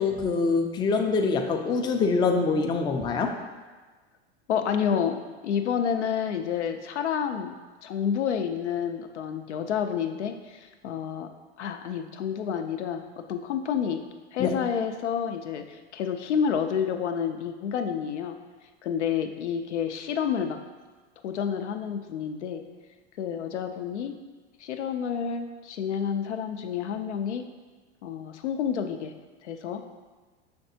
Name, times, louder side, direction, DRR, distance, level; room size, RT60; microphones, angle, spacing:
voice 1, 0.0-3.4 14.4-14.5, left 4 dB, 15° left, 3 dB, 0.3 m, -24 dB
voice 2, 4.5-7.6 7.8-11.3 11.6-14.0 14.3-18.4 18.8-20.6 21.2-22.6 23.2-24.1 24.6-27.5 28.0-29.1 29.4-29.8, left 7 dB, 90° left, 6 dB, 0.5 m, -29 dB
5.8 x 3.4 x 2.7 m, 1.3 s
hypercardioid pair, 95°, 34 cm